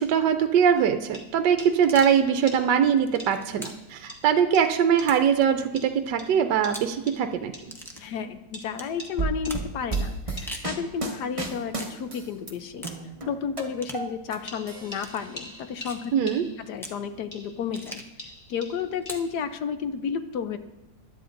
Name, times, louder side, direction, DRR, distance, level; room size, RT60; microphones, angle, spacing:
voice 1, 0.0-7.5 16.1-16.4, right 8 dB, 75° right, 8 dB, 1.3 m, -22 dB
sound 1, 0.7-0.8 1.1-1.2 1.6-1.7 2.0-2.1 2.5-2.6 3.2-3.3 3.6-3.8 4.1-4.2 4.5-4.7 5.0-5.1 5.8-5.9 6.2-6.3 6.6-6.8 7.1-7.2 7.5-7.6 8.5-8.7 9.0-9.1 9.4-9.6 9.9-10.0 10.4-10.5 14.5-16.8 17.3-19.4, left 1 dB, 25° left, 2.1 m, -43 dB
sound 2, 1.8-2.2 2.8-3.9 5.0-5.4 6.6-6.9 7.7-8.0 8.7-8.9 9.5-9.7 10.3-10.7 11.7-12.0 12.8-13.0 13.8-14.1 15.0-15.2 15.8-16.1 16.8-17.0 17.7-18.2 19.0-19.3, equal, 5° left, 0.3 m, -41 dB
voice 2, 7.9-12.9 13.3-16.3 16.6-18.0 18.5-20.6, left 6 dB, 70° left, 9 dB, 1.1 m, -32 dB
sound 3, 9.2-12.5 12.8-14.4 14.7-15.6, right 3 dB, 20° right, 1.0 m, -32 dB
20.0 x 11.5 x 2.6 m, 1.0 s
omnidirectional pair, 2.0 m